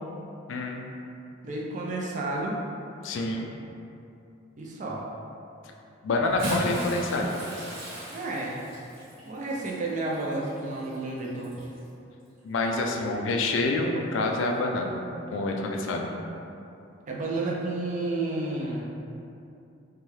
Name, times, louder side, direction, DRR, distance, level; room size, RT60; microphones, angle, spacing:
voice 1, 0.5-0.8 3.0-3.5 6.0-7.3 12.4-15.0 15.3-16.1, left 2 dB, 65° left, 1 dB, 0.3 m, -27 dB
voice 2, 1.4-2.6 4.6-5.0 8.1-8.5 9.3-11.6 17.1-18.8, right 2 dB, 40° right, -3 dB, 0.4 m, -31 dB
Bathtub (filling or washing) / Splash splatter, 6.2-11.9 12.8-12.9 14.4-14.5, right 1 dB, 90° right, 1.0 m, -37 dB
2.7 x 2.3 x 3.1 m, 2.7 s
head